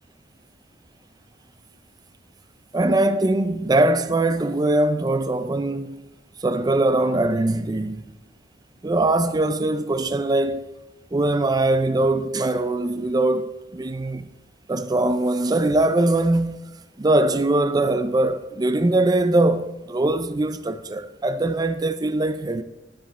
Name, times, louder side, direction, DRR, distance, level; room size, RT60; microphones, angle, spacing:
voice 1, 2.7-6.0 6.4-8.1 8.8-10.6 11.1-14.3 14.7-22.6, right 2 dB, 25° right, 0.4 m, -22 dB
10.0 x 7.2 x 4.2 m
head